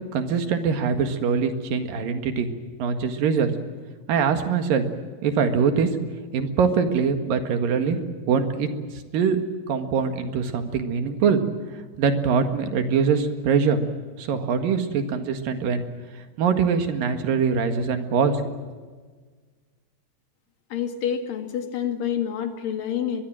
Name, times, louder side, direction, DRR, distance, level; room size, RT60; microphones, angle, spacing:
voice 1, 0.1-2.5 2.8-3.5 4.1-4.9 5.2-5.9 6.3-8.0 8.3-9.4 9.7-11.4 12.0-13.8 14.2-15.9 16.4-18.5, right 6 dB, 85° right, 7 dB, 3.6 m, -23 dB
voice 2, 20.7-23.2, left 9 dB, 80° left, 6 dB, 3.7 m, -28 dB
24.0 x 21.5 x 7.7 m, 1.5 s
omnidirectional pair, 3.9 m